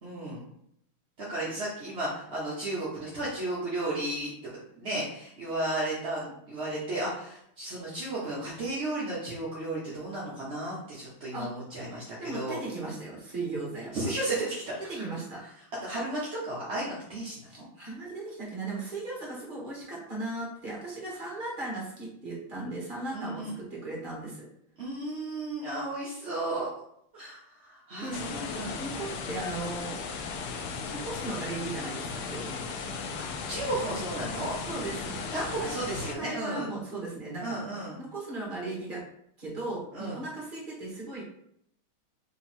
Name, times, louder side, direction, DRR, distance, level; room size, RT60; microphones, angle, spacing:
voice 1, 0.0-0.4 1.2-4.5 4.8-12.6 13.9-14.9 15.8-17.6 23.1-23.6 24.8-26.7 27.1-28.8 29.7-29.8 33.3-34.5 35.3-36.7 37.4-38.0 39.9-40.2, right 1 dB, 45° right, -7 dB, 0.8 m, -34 dB
voice 2, 12.2-13.9 14.9-15.4 17.5-24.5 28.0-28.2 28.8-30.0 30.9-32.7 34.7-35.3 35.6-35.7 36.2-37.6 38.0-39.0 39.4-41.2, right 2 dB, 30° right, -4 dB, 1.3 m, -37 dB
sound 1, 28.1-36.1, left 5 dB, 85° left, 0.9 m, -36 dB
3.7 x 3.0 x 4.3 m, 0.72 s
omnidirectional pair, 2.4 m